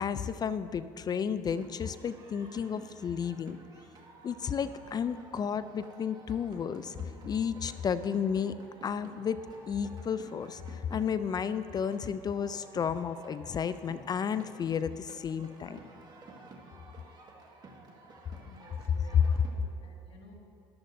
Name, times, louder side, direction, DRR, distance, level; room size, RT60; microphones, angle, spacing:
voice 1, 0.0-3.6 4.2-7.0 7.3-8.5 8.8-9.4 9.7-15.8, left 7 dB, 35° left, 14 dB, 0.4 m, -32 dB
sound 1, 1.4-19.5, right 3 dB, 35° right, 1.6 m, -52 dB
voice 2, 18.4-20.3, left 3 dB, 50° left, 0 dB, 2.0 m, -55 dB
13.5 x 12.0 x 2.6 m, 2.7 s
supercardioid pair, 85°, 12 cm